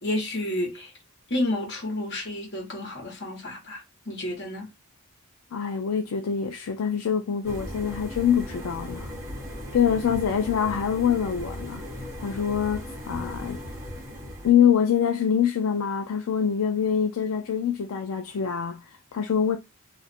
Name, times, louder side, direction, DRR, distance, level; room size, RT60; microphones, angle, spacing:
voice 1, 0.0-0.9 1.3-4.7, left 1 dB, 55° left, 1.3 m, -30 dB
voice 2, 5.5-9.1 9.7-11.8 12.2-13.6 14.4-19.6, left 8 dB, 70° left, 0.4 m, -25 dB
sound 1, 7.4-14.5, equal, 15° right, 1.2 m, -37 dB
2.5 x 2.5 x 4.2 m
head